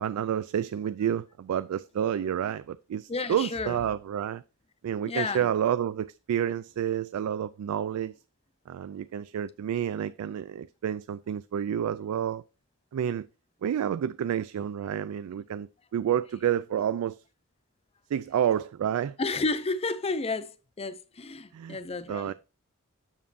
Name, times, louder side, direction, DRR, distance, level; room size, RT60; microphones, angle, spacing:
voice 1, 0.0-4.4 4.8-8.1 8.7-12.4 12.9-13.3 13.6-17.2 18.1-19.2 21.5-21.8 22.1-22.3, right 9 dB, 85° right, 0.3 m, -29 dB
voice 2, 3.1-3.8 5.0-5.5 19.2-22.3, left 3 dB, 30° left, 0.6 m, -31 dB
7.2 x 6.9 x 2.5 m
head